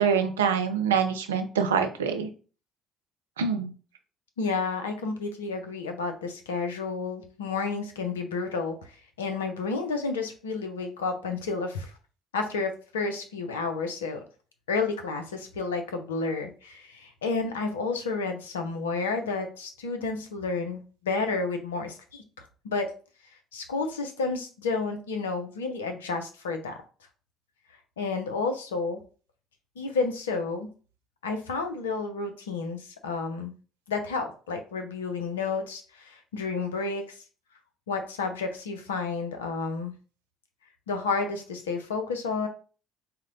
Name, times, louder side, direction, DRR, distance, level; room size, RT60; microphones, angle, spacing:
voice 1, 0.0-2.3 3.4-3.7, right 6 dB, 85° right, 6 dB, 0.5 m, -25 dB
voice 2, 4.4-8.7 9.2-11.9 12.3-14.2 14.7-22.2 22.6-22.9 23.5-26.8 28.0-29.0 29.8-30.7 31.2-33.5 33.9-37.0 37.9-39.9 40.9-42.5, left 4 dB, 85° left, 6 dB, 0.6 m, -31 dB
4.2 x 2.1 x 3.8 m, 0.38 s
hypercardioid pair, 55°, 0 cm